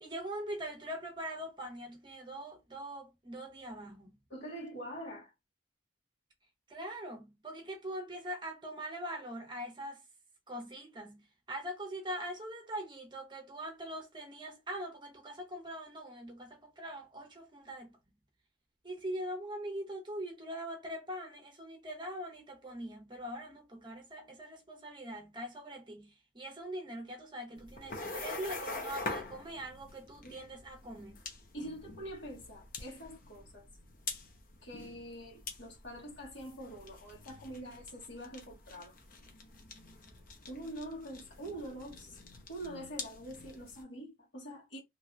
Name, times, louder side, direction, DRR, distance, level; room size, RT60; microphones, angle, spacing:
voice 1, 0.0-4.1 6.7-10.0 10.5-17.9 18.8-31.2, right 1 dB, 25° right, 0.8 m, -42 dB
voice 2, 4.3-5.3 31.5-33.6 34.6-39.0 40.5-42.2 42.5-44.8, right 1 dB, 70° left, 1.7 m, -45 dB
sound 1, 27.5-43.8, left 3 dB, 45° left, 0.8 m, -45 dB
3.0 x 2.8 x 2.5 m
head